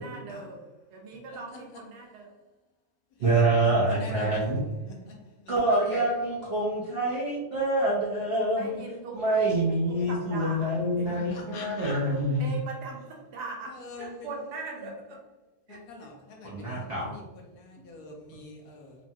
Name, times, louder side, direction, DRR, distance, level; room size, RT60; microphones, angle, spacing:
voice 1, 0.0-0.6 0.9-2.3 8.6-9.1 10.1-10.7 11.0-11.3 12.4-13.0 13.3-15.2 15.7-15.8 17.8-17.9, right 3 dB, 85° right, 1.2 m, -40 dB
voice 2, 1.5-1.8 3.9-4.5 4.9-5.0 5.4-5.5 11.3-11.9 13.7-14.4 14.8-14.9 15.7-16.8 17.0-17.2 17.6-19.0, left 3 dB, 70° left, 1.1 m, -44 dB
voice 3, 3.2-4.6 5.5-8.8 9.1-12.6 16.4-17.1, right 2 dB, 60° right, 0.6 m, -26 dB
3.0 x 2.2 x 2.6 m
omnidirectional pair, 1.7 m